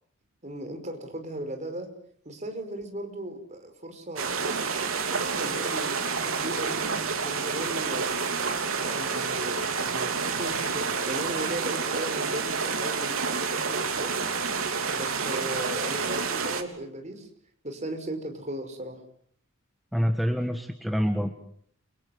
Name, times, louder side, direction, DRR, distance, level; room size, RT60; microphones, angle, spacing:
voice 1, 0.4-1.9 2.3-4.6 5.1-6.9 7.2-8.3 8.6-14.2 14.9-17.3 17.6-19.0, right 1 dB, 35° right, 6 dB, 5.3 m, -37 dB
sound 1, 4.2-16.6, right 5 dB, 85° right, 3.2 m, -29 dB
voice 2, 19.9-21.3, equal, ahead, 5 dB, 1.5 m, -26 dB
29.0 x 24.5 x 7.9 m, 0.64 s
head